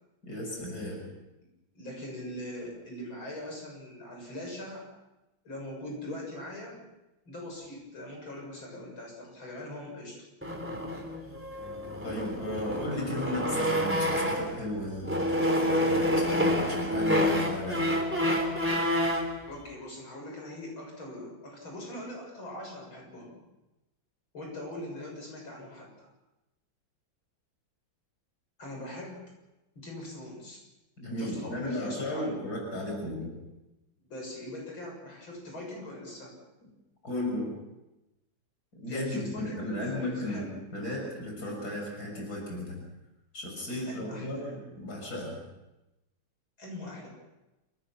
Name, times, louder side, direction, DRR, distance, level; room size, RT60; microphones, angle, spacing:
voice 1, 0.2-1.0 12.0-17.9 31.0-33.3 37.0-37.5 38.8-42.8 43.3-45.4, left 1 dB, 50° left, 0 dB, 7.2 m, -35 dB
voice 2, 1.8-4.9 5.4-6.8 7.3-10.2 19.5-23.4 24.3-26.1 28.6-29.2 29.8-30.6 31.2-32.4 34.0-36.3 38.9-40.5 43.8-44.5 46.6-47.1, left 1 dB, 85° left, 0 dB, 7.8 m, -41 dB
sound 1, 10.4-14.6 15.0-19.3, equal, 5° right, 3.5 m, -28 dB
28.0 x 20.0 x 6.0 m, 0.98 s
omnidirectional pair, 2.2 m